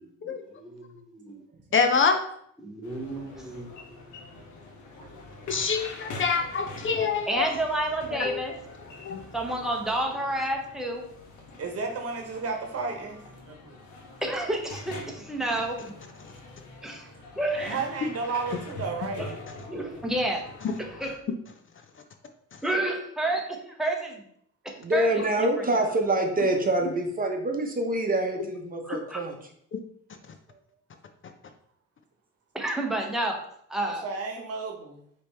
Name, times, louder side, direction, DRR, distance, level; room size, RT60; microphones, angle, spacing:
voice 1, 0.0-1.4 2.6-4.0 7.3-8.5 9.3-11.0 14.2-15.9 16.8-17.1 17.4-17.8 19.2-19.3 19.7-20.4 21.0-21.2 22.6-24.2 24.9-25.1 25.4-25.9 28.8-29.2 32.5-33.4 33.7-34.0, right 1 dB, ahead, 1 dB, 0.9 m, -30 dB
voice 2, 1.7-2.2 5.5-7.5 8.2-8.4 9.0-9.2 20.6-20.7 22.5-22.6 26.9-27.0 29.7-29.8, left 5 dB, 40° left, 7 dB, 0.5 m, -25 dB
sound 1, 2.8-21.1, left 2 dB, 85° left, 1.0 m, -44 dB
voice 3, 5.0-5.4 11.6-13.2 13.5-13.8 17.6-19.2 33.8-35.0, right 4 dB, 50° right, 3 dB, 1.1 m, -33 dB
voice 4, 24.8-29.3, right 1 dB, 30° right, 3 dB, 0.9 m, -26 dB
4.9 x 3.0 x 3.4 m, 0.68 s
cardioid pair, 90°, 30 cm